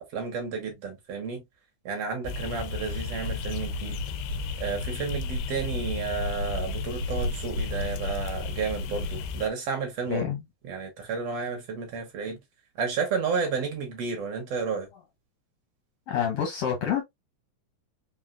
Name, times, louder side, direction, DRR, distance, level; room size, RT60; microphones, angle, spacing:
voice 1, 0.1-1.4 1.9-4.0 4.6-10.2 10.7-12.4 12.8-14.9, right 5 dB, 60° right, 1.7 m, -31 dB
sound 1, 2.2-9.5, left 3 dB, 90° left, 2.3 m, -32 dB
voice 2, 10.1-10.4 16.1-17.0, left 8 dB, 70° left, 1.5 m, -27 dB
5.7 x 2.5 x 2.3 m
omnidirectional pair, 4.0 m